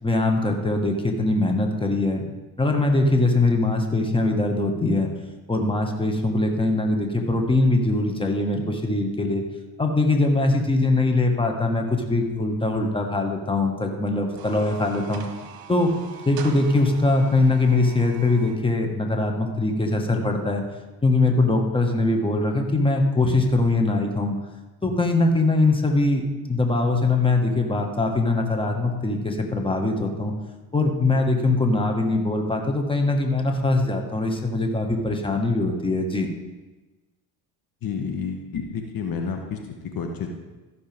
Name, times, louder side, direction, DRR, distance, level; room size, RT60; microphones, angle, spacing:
voice 1, 0.0-2.3 2.6-5.1 5.5-9.4 9.8-15.3 15.7-15.9 16.3-20.6 21.0-24.4 24.8-30.3 30.7-36.3, left 2 dB, 10° left, 3 dB, 1.7 m, -22 dB
sound 1, 14.2-18.6, right 6 dB, 50° right, 1.4 m, -42 dB
voice 2, 37.8-39.6 39.8-40.3, left 6 dB, 45° left, 4 dB, 1.3 m, -30 dB
14.5 x 6.6 x 3.6 m, 1.2 s
hypercardioid pair, 75°, 48 cm